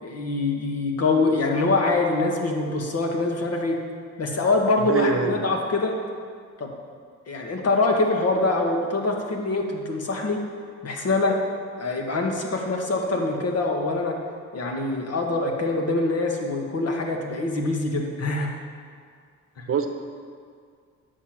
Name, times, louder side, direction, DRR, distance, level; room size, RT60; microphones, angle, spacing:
voice 1, 0.0-3.8 4.2-5.9 6.6-6.7 7.3-10.4 10.8-11.4 11.8-14.2 14.5-18.5, left 3 dB, 55° left, 1 dB, 1.7 m, -24 dB
voice 2, 4.8-5.4 19.7-19.9, right 6 dB, 45° right, 5 dB, 0.9 m, -23 dB
9.8 x 6.9 x 6.0 m, 2.1 s
cardioid pair, 90°, 30 cm